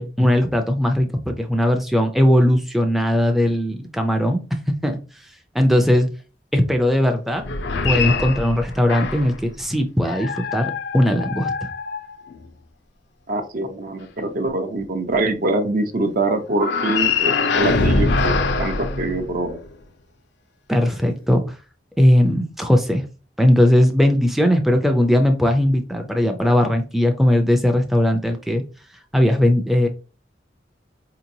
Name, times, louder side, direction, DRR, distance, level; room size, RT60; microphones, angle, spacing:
voice 1, 0.0-4.4 4.7-5.0 5.5-6.1 6.5-7.5 7.8-11.7 20.7-21.6 22.0-23.0 23.4-28.6 29.1-29.9, left 1 dB, ahead, 0.4 m, -18 dB
sound 1, 7.4-9.4 10.0-12.5 16.6-19.7, left 4 dB, 75° left, 0.5 m, -23 dB
voice 2, 13.3-19.6, right 2 dB, 50° right, 0.6 m, -24 dB
4.4 x 2.9 x 2.6 m
head